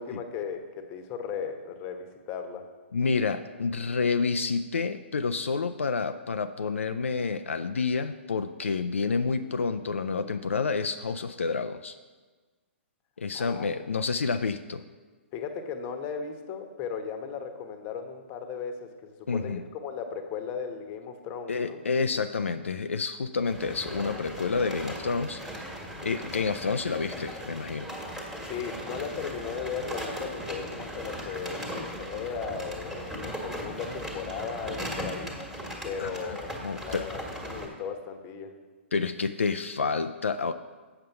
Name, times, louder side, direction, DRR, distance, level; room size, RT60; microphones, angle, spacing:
voice 1, 0.0-2.6 13.3-13.7 15.3-21.8 28.4-35.4 35.8-38.5, left 6 dB, 30° left, 6 dB, 1.0 m, -36 dB
voice 2, 2.9-12.0 13.2-14.8 19.3-19.6 21.5-25.4 26.0-27.9 36.0-37.1 38.9-40.5, left 4 dB, 80° left, 9 dB, 0.4 m, -29 dB
sound 1, 23.5-37.7, equal, 5° right, 1.6 m, -38 dB
7.8 x 6.6 x 5.6 m, 1.3 s
figure-of-eight pair, 125°, 7 cm